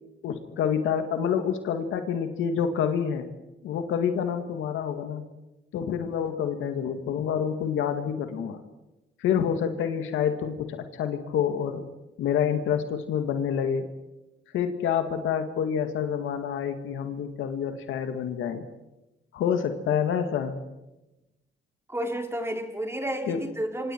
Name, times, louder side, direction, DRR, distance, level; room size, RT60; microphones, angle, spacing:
voice 1, 0.2-3.3 3.6-5.2 5.7-8.6 9.2-11.8 12.2-13.9 14.5-18.6 19.3-20.6 23.3-23.4, left 8 dB, 85° left, 7 dB, 2.1 m, -27 dB
voice 2, 21.9-23.9, right 1 dB, 15° right, 3 dB, 3.6 m, -31 dB
28.0 x 25.5 x 4.7 m, 1.0 s
cardioid pair, 90°, 20 cm